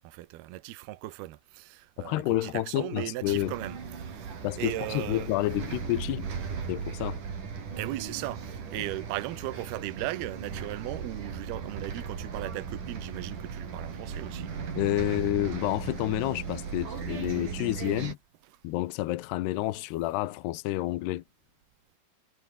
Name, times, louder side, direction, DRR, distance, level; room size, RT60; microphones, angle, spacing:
voice 1, 0.0-5.3 7.8-14.5, right 16 dB, 70° right, 2.5 m, -37 dB
voice 2, 2.0-3.5 4.4-6.3 6.7-7.2 14.8-18.2 18.6-21.2, left 16 dB, 80° left, 2.5 m, -29 dB
Bus, 3.2-18.1, right 6 dB, 40° right, 4.9 m, -37 dB
omnidirectional pair, 6.0 m